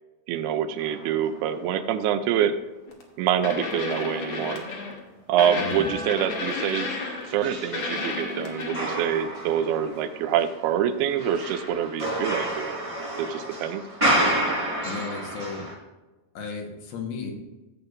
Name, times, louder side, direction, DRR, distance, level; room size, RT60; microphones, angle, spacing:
voice 1, 0.3-2.6 3.2-4.6 5.3-6.9 7.3-12.8 13.2-13.8, right 9 dB, 90° right, 9 dB, 2.7 m, -26 dB
sound 1, 0.8-1.6 2.1-2.2 5.4-5.5 6.9-15.7, right 1 dB, 20° right, 0.9 m, -30 dB
sound 2, 2.9-3.0 3.4-5.0 5.4-7.4 7.7-9.0 11.3-11.4, left 3 dB, 60° left, 1.4 m, -32 dB
voice 2, 5.6-5.9 14.8-15.7 16.3-17.3, left 4 dB, 80° left, 1 dB, 3.2 m, -34 dB
15.0 x 7.8 x 2.6 m, 1.1 s
omnidirectional pair, 4.4 m